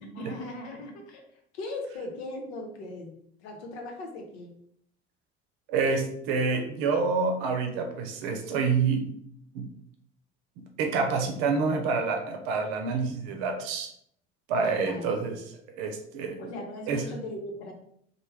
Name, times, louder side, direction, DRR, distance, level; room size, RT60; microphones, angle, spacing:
voice 1, 0.1-1.2 1.6-4.5 14.6-15.1 16.4-17.7, left 2 dB, 70° left, 2 dB, 0.8 m, -39 dB
voice 2, 5.7-9.1 9.5-9.7 10.6-13.9 14.5-15.3 15.7-16.6 16.9-17.0, right 4 dB, 65° right, 5 dB, 0.6 m, -28 dB
3.1 x 2.1 x 3.4 m, 0.68 s
figure-of-eight pair, 60°, 33 cm